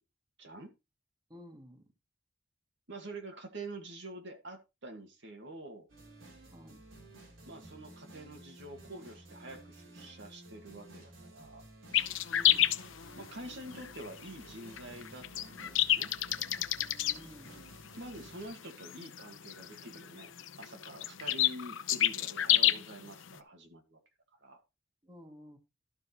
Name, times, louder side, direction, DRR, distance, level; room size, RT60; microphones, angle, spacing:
voice 1, 0.4-0.7 2.9-5.9 7.5-11.6 13.2-16.1 18.0-20.3 20.6-24.0 24.4-24.6, right 1 dB, 65° right, 2.0 m, -47 dB
voice 2, 1.3-1.9 6.5-6.8 12.3-12.7 17.1-17.5 25.0-25.6, left 1 dB, 20° right, 1.7 m, -52 dB
sound 1, 5.9-18.5, right 1 dB, 85° right, 3.5 m, -54 dB
sound 2, 11.9-23.4, left 13 dB, 90° left, 0.7 m, -30 dB
12.5 x 4.9 x 4.4 m
head